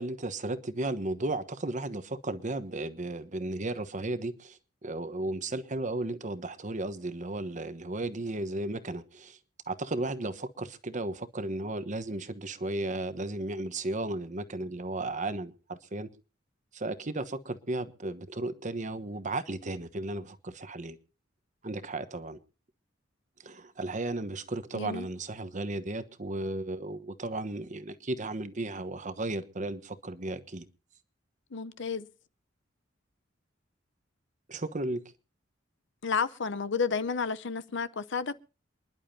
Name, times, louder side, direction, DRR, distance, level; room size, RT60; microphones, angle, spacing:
voice 1, 0.0-9.4 9.7-16.1 16.7-21.0 21.6-22.4 23.4-30.7 34.5-35.0, right 2 dB, 40° right, 1.1 m, -34 dB
voice 2, 24.7-25.1 31.5-32.1 36.0-38.4, left 5 dB, 65° left, 0.8 m, -31 dB
28.0 x 11.0 x 2.8 m
head